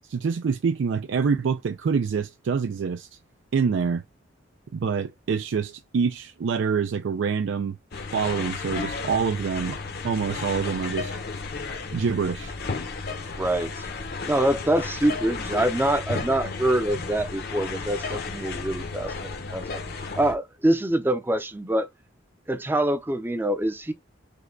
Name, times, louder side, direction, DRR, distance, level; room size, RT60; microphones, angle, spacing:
voice 1, 0.1-3.1 3.5-4.0 4.7-7.8 8.1-9.8 10.0-11.1 11.9-12.6, right 6 dB, 70° right, 0.4 m, -26 dB
sound 1, 7.9-20.3, left 4 dB, 55° left, 0.8 m, -33 dB
voice 2, 13.3-13.9 14.3-19.8 20.2-21.9 22.5-23.9, right 1 dB, 10° right, 0.5 m, -25 dB
5.4 x 2.2 x 3.7 m
head